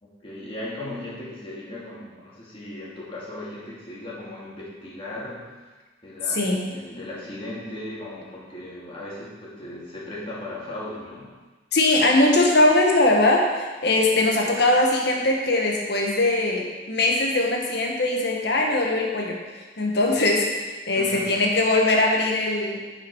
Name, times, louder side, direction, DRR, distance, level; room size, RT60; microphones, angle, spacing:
voice 1, 0.0-5.6 6.0-11.3 21.0-21.4, left 1 dB, 30° left, -6 dB, 2.1 m, -37 dB
voice 2, 11.7-19.3 19.8-22.8, left 2 dB, 65° left, 0 dB, 1.4 m, -21 dB
9.5 x 4.9 x 4.7 m, 1.3 s
head